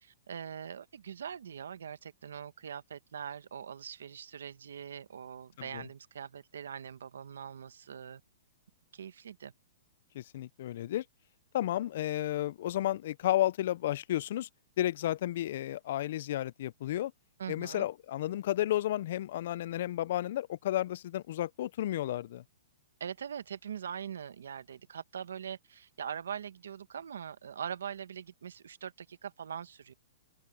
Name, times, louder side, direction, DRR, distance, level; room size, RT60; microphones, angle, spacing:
voice 1, 0.0-8.2 8.9-9.5 17.4-17.9 23.0-29.9, right 8 dB, 85° right, 1.3 m, -42 dB
voice 2, 10.1-11.0 11.5-14.5 14.8-17.1 17.5-22.4, left 13 dB, 55° left, 0.4 m, -32 dB
open air
hypercardioid pair, 160°, 0 cm